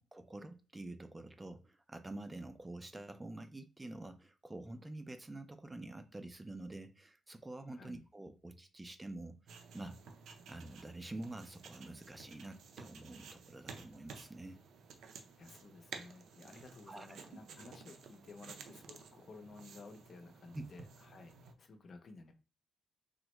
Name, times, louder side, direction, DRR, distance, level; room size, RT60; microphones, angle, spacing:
voice 1, 0.0-10.0 10.5-14.6 16.9-17.2 20.5-20.6, right 2 dB, 15° right, 0.4 m, -47 dB
voice 2, 7.7-8.1 15.3-22.3, left 3 dB, 45° left, 0.5 m, -54 dB
sound 1, 9.5-21.5, right 5 dB, 75° right, 0.5 m, -54 dB
3.5 x 2.1 x 3.0 m
cardioid pair, 125°, 0 cm